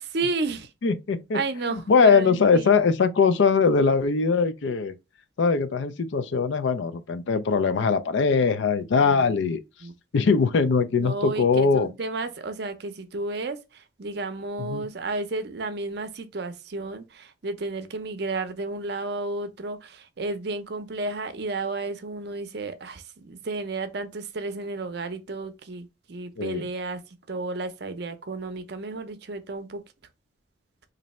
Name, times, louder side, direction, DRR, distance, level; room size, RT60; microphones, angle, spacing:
voice 1, 0.0-0.7 1.3-2.8 9.0-9.5 9.8-9.9 10.9-27.0 27.3-29.8, right 3 dB, 55° right, 0.6 m, -32 dB
voice 2, 0.8-1.4 1.7-4.9 5.4-9.6 10.1-11.9 14.6-14.9 26.4-26.6, left 5 dB, 70° left, 0.4 m, -21 dB
3.1 x 2.6 x 4.1 m
head